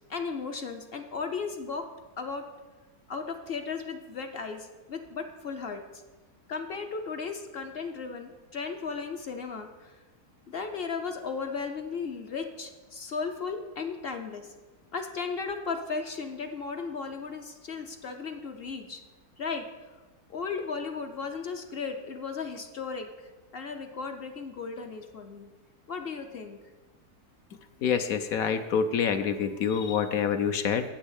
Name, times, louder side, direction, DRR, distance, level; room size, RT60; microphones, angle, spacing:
voice 1, 0.1-1.9 2.2-2.5 3.1-6.0 6.5-9.9 10.5-14.5 14.9-19.0 19.4-19.9 20.3-23.1 23.5-25.5 25.9-26.6, left 5 dB, 50° left, 6 dB, 0.8 m, -35 dB
voice 2, 27.8-30.8, left 7 dB, 65° left, 8 dB, 1.1 m, -26 dB
8.3 x 6.3 x 8.0 m, 1.2 s
omnidirectional pair, 1.7 m